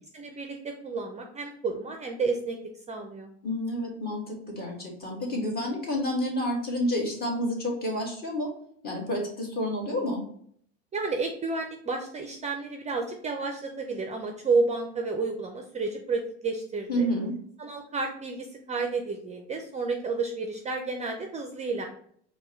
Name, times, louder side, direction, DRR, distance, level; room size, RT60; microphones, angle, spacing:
voice 1, 0.1-2.6 2.9-3.3 10.9-17.1 17.6-21.9, right 4 dB, 20° right, 4 dB, 0.5 m, -31 dB
voice 2, 3.4-8.6 8.8-10.2 16.9-17.4, left 1 dB, 30° left, -1 dB, 1.7 m, -29 dB
4.5 x 2.2 x 4.3 m, 0.62 s
supercardioid pair, 105°, 33 cm